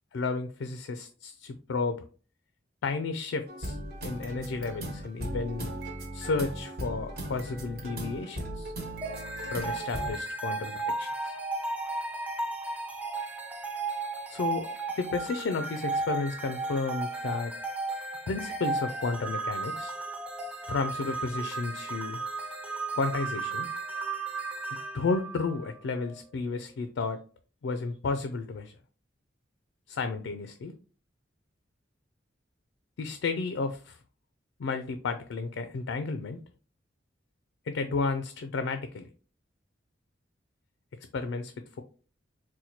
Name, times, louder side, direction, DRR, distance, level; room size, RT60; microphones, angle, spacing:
voice 1, 0.1-2.0 2.8-5.8 6.1-8.7 9.5-11.3 14.3-14.7 15.0-17.5 18.3-19.9 20.7-22.2 22.9-23.7 24.9-27.2 27.6-28.8 29.9-30.7 33.0-34.0 34.6-36.4 37.7-39.1 41.1-41.8, left 4 dB, 80° left, 8 dB, 0.4 m, -32 dB
sound 1, 3.5-10.1, right 1 dB, 55° right, 1.1 m, -38 dB
sound 2, 9.0-26.2, right 3 dB, 10° right, 0.5 m, -35 dB
4.2 x 2.2 x 2.8 m, 0.39 s
head